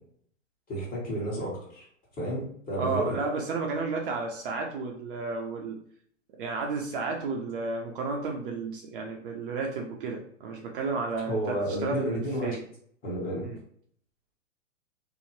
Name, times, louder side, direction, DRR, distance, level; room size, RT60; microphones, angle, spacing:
voice 1, 0.7-1.8 2.2-3.2 11.3-12.6 13.0-13.5, equal, 20° left, -5 dB, 1.2 m, -31 dB
voice 2, 2.8-5.8 6.4-12.6 13.4-13.6, right 4 dB, 45° right, 1 dB, 0.5 m, -32 dB
2.7 x 2.0 x 3.0 m, 0.63 s
hypercardioid pair, 120°, 38 cm